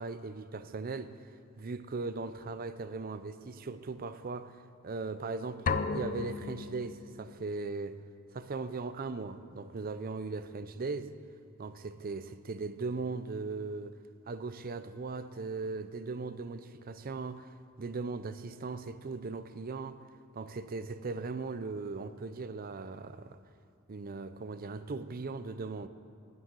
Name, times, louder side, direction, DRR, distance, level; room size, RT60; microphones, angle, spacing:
voice 1, 0.0-1.3 1.6-8.0 8.3-11.1 11.6-14.0 14.3-20.0 20.3-23.4 23.9-25.9, right 3 dB, 45° right, 0.5 m, -38 dB
sound 1, 5.7-7.5, left 4 dB, 40° left, 0.4 m, -34 dB
9.5 x 9.1 x 8.3 m
head